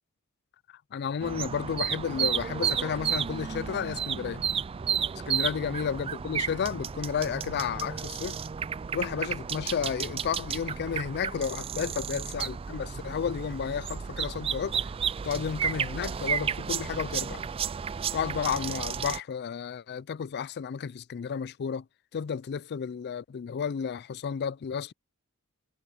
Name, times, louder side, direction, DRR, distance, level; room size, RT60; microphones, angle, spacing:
voice 1, 0.9-4.4 5.3-8.4 8.9-14.9 15.2-17.4 18.1-21.8 22.1-24.9, left 7 dB, 50° left, 0.4 m, -32 dB
sound 1, 1.2-19.2, right 7 dB, 25° right, 0.3 m, -32 dB
head